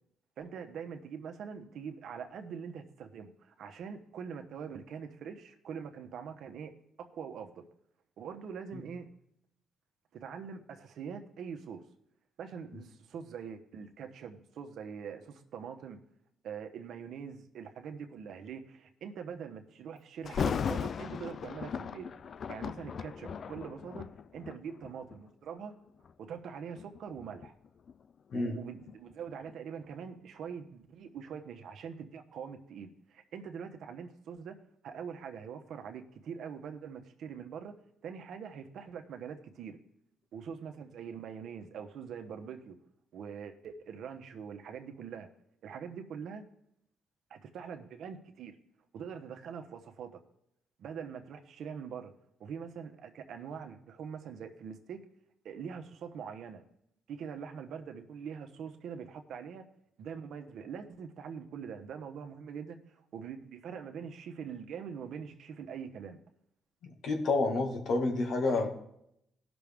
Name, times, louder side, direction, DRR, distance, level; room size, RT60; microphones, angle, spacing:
voice 1, 0.4-6.7 7.0-7.6 8.2-9.1 10.1-11.8 12.4-16.0 16.4-22.1 22.5-24.1 24.3-25.7 26.2-27.5 28.3-34.6 34.8-37.7 38.0-39.8 40.3-42.8 43.1-45.3 45.6-46.4 47.3-48.6 48.9-50.1 50.8-52.1 52.4-55.0 55.4-56.6 57.1-59.6 60.0-66.2, right 7 dB, 70° right, 6 dB, 1.0 m, -43 dB
Thunder, 20.2-25.2 25.9-26.1 26.7-29.6 29.9-30.0, left 7 dB, 50° left, 0.3 m, -37 dB
voice 2, 67.0-68.7, left 3 dB, 70° left, 3 dB, 1.9 m, -29 dB
17.5 x 6.1 x 3.6 m, 0.77 s
cardioid pair, 90°, 0 cm